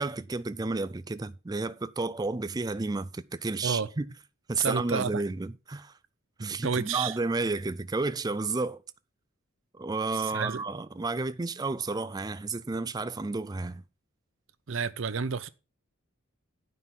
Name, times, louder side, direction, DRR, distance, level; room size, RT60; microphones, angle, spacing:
voice 1, 0.0-4.1 4.5-5.9 6.4-8.8 9.7-13.8, right 3 dB, 20° right, 0.4 m, -31 dB
voice 2, 4.6-5.2 6.6-7.2 10.1-10.6 14.7-15.5, right 5 dB, 60° right, 0.6 m, -30 dB
9.6 x 5.4 x 5.9 m
head